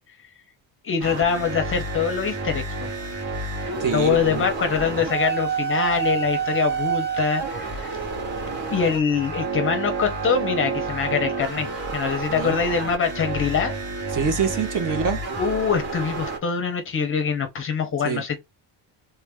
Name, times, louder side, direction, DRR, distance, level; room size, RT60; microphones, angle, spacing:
voice 1, 0.8-2.9 3.6-8.0 8.7-13.7 15.4-18.4, left 6 dB, 30° left, 0.6 m, -24 dB
sound 1, 1.0-16.4, right 4 dB, 85° right, 2.0 m, -29 dB
voice 2, 3.8-4.5 12.3-12.6 14.1-15.2 18.0-18.2, right 6 dB, 45° right, 0.9 m, -25 dB
3.3 x 2.5 x 3.3 m
cardioid pair, 170°, 44 cm